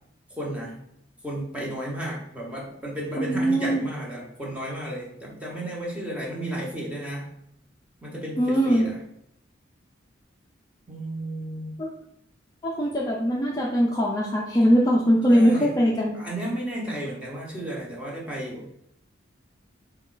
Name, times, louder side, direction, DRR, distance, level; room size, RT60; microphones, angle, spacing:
voice 1, 0.4-0.7 1.2-7.3 8.0-9.0 10.9-11.8 15.3-15.8 16.1-18.6, right 1 dB, 5° right, -4 dB, 0.9 m, -33 dB
voice 2, 3.2-3.8 8.4-8.9 11.8-11.9 12.6-16.1, equal, 20° left, -4 dB, 0.4 m, -21 dB
4.2 x 2.3 x 3.8 m, 0.74 s
head